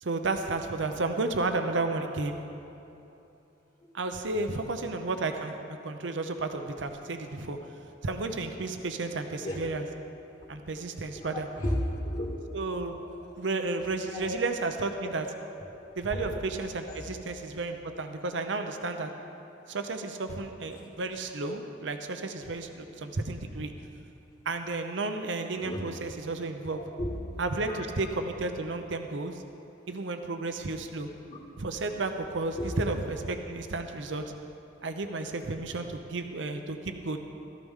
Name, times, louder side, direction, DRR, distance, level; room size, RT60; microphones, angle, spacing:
voice 1, 0.0-2.4 3.9-5.5 5.8-7.6 8.0-9.8 10.5-11.5 12.5-13.0 13.4-15.2 16.0-19.1 19.7-23.7 24.5-26.8 27.4-29.4 29.9-31.1 31.6-34.2 34.8-37.2, right 3 dB, 70° right, 6 dB, 0.7 m, -32 dB
voice 2, 11.1-12.3 13.0-13.2 14.1-14.3 16.9-17.0 20.7-20.9 25.6-25.8 26.7-27.1 27.7-27.8 31.3-31.4 32.6-32.8, left 1 dB, 45° left, -6 dB, 2.0 m, -33 dB
17.0 x 13.5 x 3.7 m, 2.9 s
head